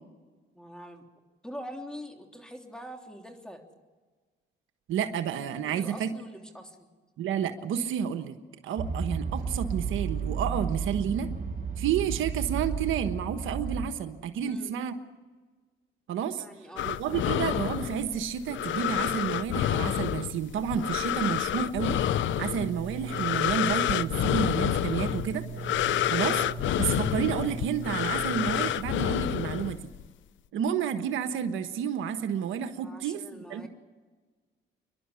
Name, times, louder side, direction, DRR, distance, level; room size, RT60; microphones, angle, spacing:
voice 1, 0.5-1.0 1.4-3.6 5.7-6.9 14.4-14.7 16.3-17.3 26.0-26.2 32.8-33.7, equal, 5° left, 3 dB, 3.2 m, -44 dB
voice 2, 4.9-6.1 7.2-8.3 8.6-11.3 11.8-14.9 16.1-16.4 16.8-25.4 26.1-26.4 26.8-29.8 30.5-33.2 33.5-33.7, right 8 dB, 80° right, 8 dB, 1.3 m, -30 dB
sound 1, 8.8-13.9, right 5 dB, 40° right, 6.6 m, -32 dB
sound 2, 16.8-30.1, left 12 dB, 70° left, 0.6 m, -29 dB
sound 3, 21.7-28.7, right 6 dB, 65° right, 2.2 m, -40 dB
28.5 x 11.5 x 9.9 m, 1.4 s
cardioid pair, 90°, 20 cm